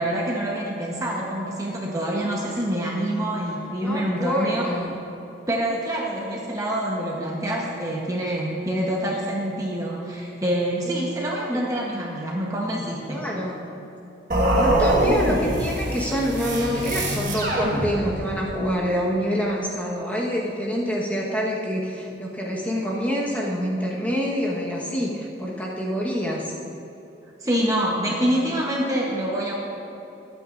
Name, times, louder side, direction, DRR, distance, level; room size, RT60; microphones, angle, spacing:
voice 1, 0.0-4.7 5.5-13.3 27.4-29.5, right 1 dB, 20° right, -3 dB, 1.0 m, -26 dB
voice 2, 3.8-4.9 11.5-11.6 13.1-13.7 14.6-26.5, equal, 10° left, -4 dB, 1.3 m, -26 dB
sound 1, 14.3-18.4, right 1 dB, 45° right, 1.6 m, -23 dB
20.5 x 9.0 x 2.6 m, 2.9 s
head